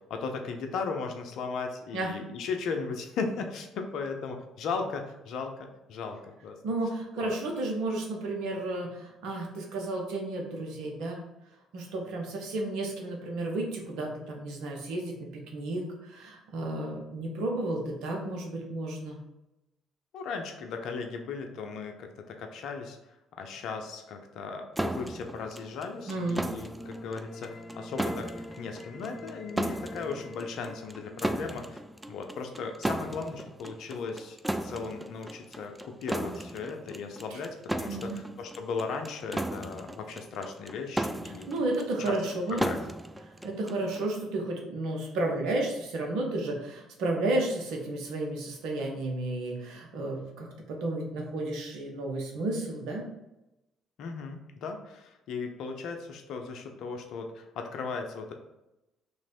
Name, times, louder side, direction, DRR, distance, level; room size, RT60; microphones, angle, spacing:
voice 1, 0.1-6.6 7.2-7.3 20.1-23.0 23.4-31.8 32.1-41.5 42.0-42.2 42.5-42.8 54.0-58.3, left 4 dB, 65° left, 4 dB, 0.6 m, -37 dB
voice 2, 6.6-11.2 11.7-19.2 26.1-26.5 37.3-37.4 37.8-38.2 41.5-42.6 43.4-53.1, right 2 dB, 70° right, 1 dB, 0.9 m, -32 dB
sound 1, 24.8-44.1, right 1 dB, 10° right, 0.3 m, -36 dB
sound 2, 26.1-32.1, left 1 dB, 15° left, 1.1 m, -46 dB
3.2 x 3.0 x 4.3 m, 0.94 s
hypercardioid pair, 55°, 0 cm